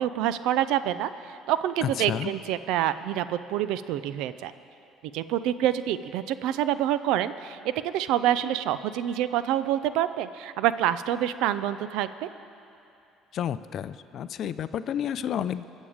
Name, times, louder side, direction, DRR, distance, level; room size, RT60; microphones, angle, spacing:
voice 1, 0.0-4.5 5.1-12.3, right 11 dB, 75° right, 14 dB, 0.4 m, -27 dB
voice 2, 1.8-2.3 13.3-15.6, left 9 dB, 60° left, 14 dB, 0.4 m, -30 dB
21.5 x 7.3 x 5.0 m, 2.8 s
supercardioid pair, 70°, 0 cm